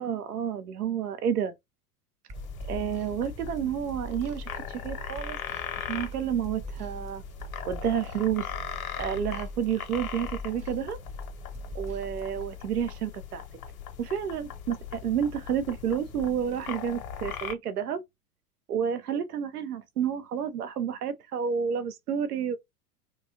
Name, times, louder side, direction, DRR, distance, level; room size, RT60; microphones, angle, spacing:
voice 1, 0.0-1.5 2.7-5.4 5.7-7.2 7.6-8.5 9.0-11.0 11.7-13.4 14.0-18.0 18.7-22.6, right 8 dB, 80° right, 0.5 m, -30 dB
sound 1, 2.3-17.5, left 8 dB, 65° left, 0.8 m, -40 dB
sound 2, 2.3-12.5, equal, 15° right, 0.6 m, -42 dB
2.7 x 2.2 x 2.7 m
figure-of-eight pair, 85°, 45 cm